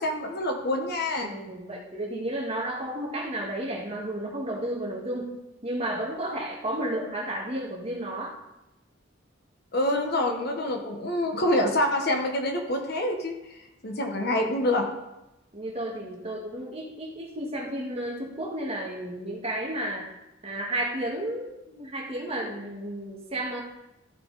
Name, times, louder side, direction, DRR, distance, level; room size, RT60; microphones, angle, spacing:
voice 1, 0.0-1.3 9.7-14.9, left 1 dB, 55° left, 3 dB, 1.3 m, -26 dB
voice 2, 1.2-5.3 5.6-8.3 14.0-14.2 15.5-20.1 20.4-23.6, right 1 dB, 30° right, -2 dB, 1.9 m, -32 dB
14.0 x 5.9 x 4.1 m, 0.94 s
head